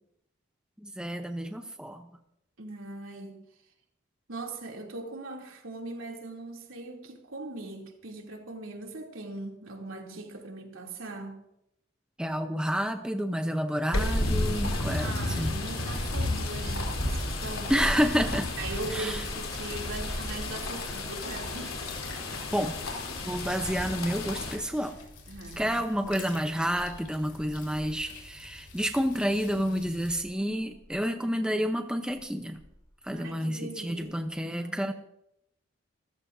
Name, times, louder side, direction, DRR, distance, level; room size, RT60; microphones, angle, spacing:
voice 1, 0.8-2.1 12.2-15.5 17.7-18.6 18.9-19.2 22.5-22.8 23.3-25.0 25.6-32.6 33.0-34.9, equal, 5° right, 0.7 m, -29 dB
voice 2, 2.6-3.4 4.3-11.4 15.0-17.9 18.6-21.9 25.3-25.7 26.0-26.3 33.1-34.2 34.4-34.8, right 2 dB, 80° right, 2.9 m, -40 dB
sound 1, 13.9-24.6, left 2 dB, 90° left, 3.6 m, -32 dB
sound 2, 15.8-28.1 28.5-28.6 29.7-31.1 32.1-32.2 32.6-32.9 34.0-34.1, equal, 20° left, 3.2 m, -43 dB
sound 3, 21.4-30.2, left 4 dB, 60° left, 4.3 m, -49 dB
26.0 x 14.5 x 2.7 m
head